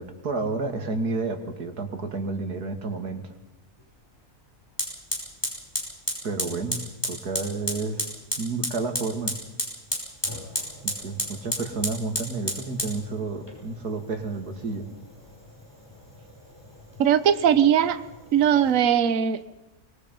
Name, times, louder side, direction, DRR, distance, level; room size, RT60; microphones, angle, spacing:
voice 1, 0.0-3.3 6.2-6.8 7.0-8.0 8.4-9.3 10.8-14.9, right 3 dB, 80° right, 6 dB, 2.9 m, -30 dB
Fire, 3.8-3.9 4.8-18.8, equal, 15° left, 6.0 m, -34 dB
voice 2, 17.0-18.0 18.3-19.4, right 9 dB, 60° right, 12 dB, 1.3 m, -20 dB
25.0 x 22.0 x 5.4 m, 1.1 s
omnidirectional pair, 1.6 m